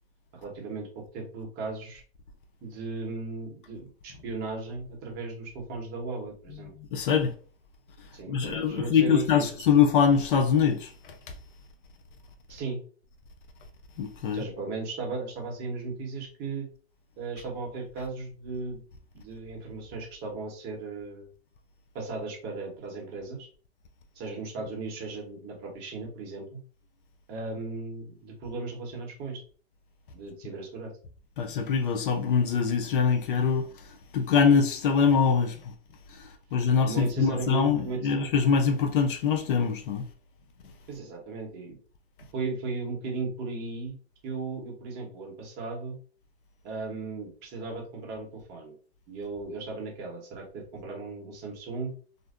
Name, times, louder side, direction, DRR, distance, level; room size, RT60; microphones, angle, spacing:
voice 1, 0.3-2.0 2.6-6.7 8.1-9.5 12.5-12.8 14.3-16.7 17.2-18.8 19.1-21.3 21.9-23.5 24.1-26.6 27.3-29.4 30.1-30.9 36.8-38.2 40.9-41.8 42.3-44.0 44.2-46.0 46.6-48.7 49.1-51.9, right 3 dB, 30° right, 0.9 m, -36 dB
voice 2, 6.6-7.3 8.3-11.1 14.0-14.4 31.4-35.7 36.1-40.0, left 6 dB, 50° left, 0.5 m, -24 dB
2.6 x 2.1 x 2.4 m
hypercardioid pair, 120°, 33 cm